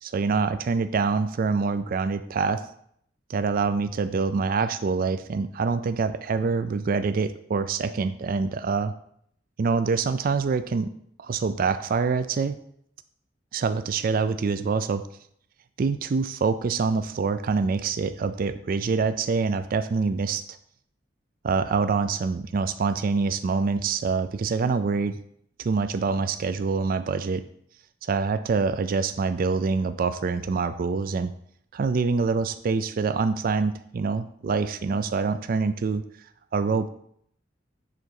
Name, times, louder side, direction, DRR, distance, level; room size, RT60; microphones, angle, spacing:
voice 1, 0.0-2.6 3.3-8.9 9.6-10.9 11.2-12.6 13.5-15.0 15.8-20.4 21.4-25.2 25.6-27.4 28.0-31.3 31.7-36.0 36.5-36.9, right 4 dB, 50° right, 11 dB, 0.4 m, -25 dB
7.6 x 3.9 x 4.7 m, 0.67 s
head